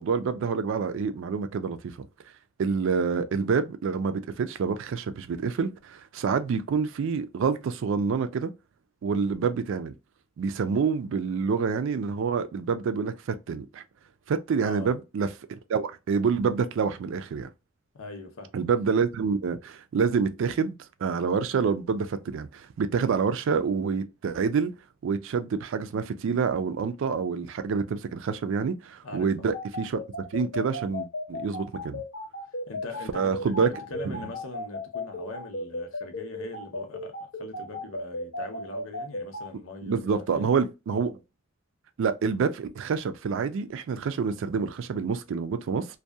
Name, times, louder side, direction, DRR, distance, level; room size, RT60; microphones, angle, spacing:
voice 1, 0.0-1.9 2.6-8.5 9.0-9.9 10.4-13.8 14.3-17.5 18.5-20.7 21.0-24.7 25.0-30.0 30.3-32.0 33.1-33.7 34.1-34.2 39.8-41.2 42.0-45.9, right 5 dB, 65° right, 0.3 m, -27 dB
voice 2, 14.5-14.9 17.9-18.5 23.1-23.3 29.0-29.5 32.7-40.5, left 3 dB, 90° left, 0.7 m, -41 dB
sound 1, 29.5-39.4, left 2 dB, 70° left, 0.9 m, -34 dB
2.7 x 2.2 x 2.2 m
head